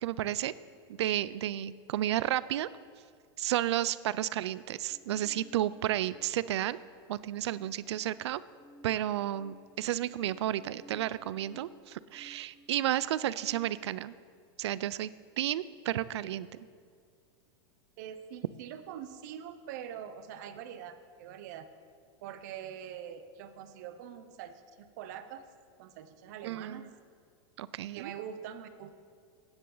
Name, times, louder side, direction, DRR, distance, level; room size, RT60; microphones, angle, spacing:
voice 1, 0.0-0.5 0.9-2.7 3.4-6.8 7.1-8.4 8.8-14.1 14.6-15.1 15.4-16.5 26.4-26.9 27.6-28.1, right 13 dB, 90° right, 17 dB, 0.4 m, -32 dB
sound 1, 4.9-7.0 7.3-13.7, right 1 dB, 5° left, 1.0 m, -58 dB
voice 2, 18.0-21.7 22.2-25.5 25.8-26.9 27.9-28.9, right 9 dB, 40° right, 10 dB, 0.7 m, -44 dB
15.5 x 9.8 x 3.9 m, 2.1 s
supercardioid pair, 175°, 14 cm